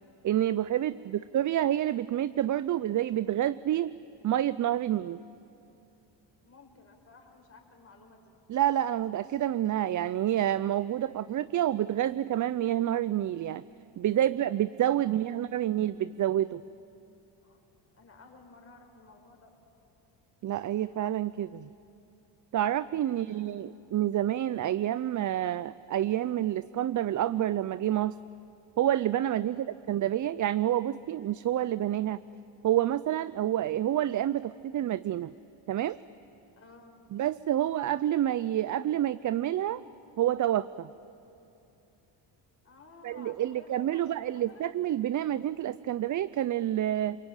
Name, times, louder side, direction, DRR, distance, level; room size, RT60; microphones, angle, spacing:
voice 1, 0.2-3.9 4.2-5.2 8.5-13.6 14.0-16.6 20.4-21.7 22.5-28.2 28.8-32.2 32.6-35.3 35.7-36.0 37.1-39.8 40.2-40.9 43.0-47.2, right 12 dB, 45° right, 16 dB, 0.5 m, -28 dB
voice 2, 6.4-8.3 15.0-15.5 17.4-17.6 17.9-19.5 23.1-23.8 29.5-29.7 36.5-37.0 42.6-44.7, left 3 dB, 30° left, 1 dB, 5.2 m, -55 dB
29.0 x 21.5 x 9.1 m, 2.8 s
cardioid pair, 95°, 44 cm